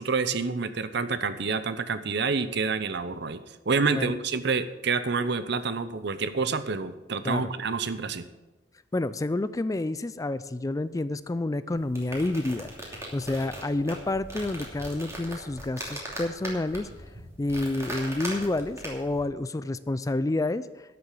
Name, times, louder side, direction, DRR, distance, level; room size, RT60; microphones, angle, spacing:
voice 1, 0.0-3.4 3.7-8.3, right 4 dB, 65° right, 12 dB, 0.8 m, -28 dB
voice 2, 8.9-16.9 17.4-20.7, left 2 dB, 20° left, 15 dB, 0.4 m, -29 dB
sound 1, 11.7-19.2, right 1 dB, 15° right, 2.8 m, -39 dB
12.0 x 6.9 x 8.4 m, 1.1 s
head